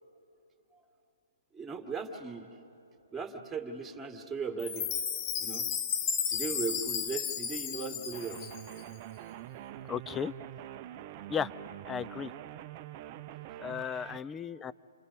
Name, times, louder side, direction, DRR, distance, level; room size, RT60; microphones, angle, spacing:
voice 1, 1.5-2.5 3.1-4.9 5.4-5.6 6.3-8.4, right 5 dB, 5° right, 3 dB, 1.9 m, -37 dB
Chime, 4.6-8.8, left 7 dB, 30° left, 1.1 m, -34 dB
sound 1, 8.1-14.2, right 12 dB, 35° right, 0.6 m, -45 dB
voice 2, 9.9-10.3 11.3-11.5 11.9-12.3 13.6-14.7, left 7 dB, 15° left, 18 dB, 0.4 m, -34 dB
28.5 x 27.0 x 4.1 m, 2.8 s
hypercardioid pair, 135°, 0 cm